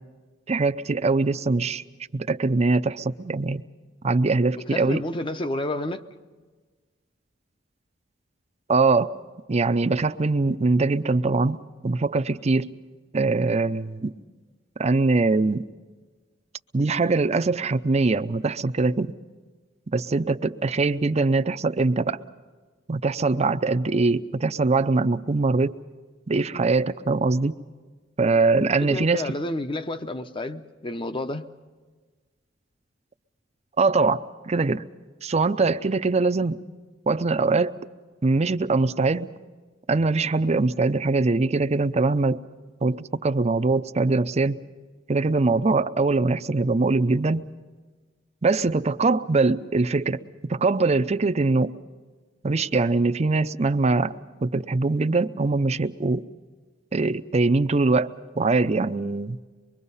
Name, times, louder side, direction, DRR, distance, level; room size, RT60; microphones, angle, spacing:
voice 1, 0.5-1.8 2.1-3.6 4.0-5.0 8.7-9.2 9.5-11.6 11.8-12.7 13.1-14.1 14.8-15.7 16.7-19.1 19.9-22.2 22.9-25.8 26.3-27.6 28.2-29.3 33.8-34.8 35.2-36.6 37.1-37.7 38.2-39.3 39.9-42.4 42.8-44.6 45.1-47.5 48.4-50.2 50.5-51.7 52.4-54.1 54.4-56.2 56.9-59.4, right 3 dB, 35° right, 0.6 m, -22 dB
voice 2, 4.7-6.0 28.9-31.5, left 2 dB, 25° left, 0.8 m, -30 dB
24.5 x 22.5 x 5.6 m
head